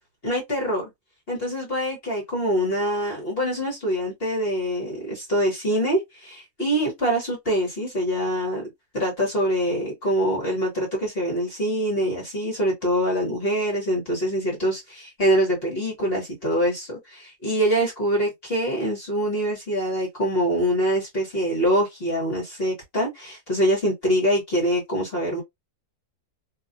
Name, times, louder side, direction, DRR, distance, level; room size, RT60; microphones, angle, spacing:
voice 1, 0.2-0.9 1.3-8.6 8.9-25.4, equal, 40° left, 1.2 m, -24 dB
2.8 x 2.2 x 2.5 m
omnidirectional pair, 1.7 m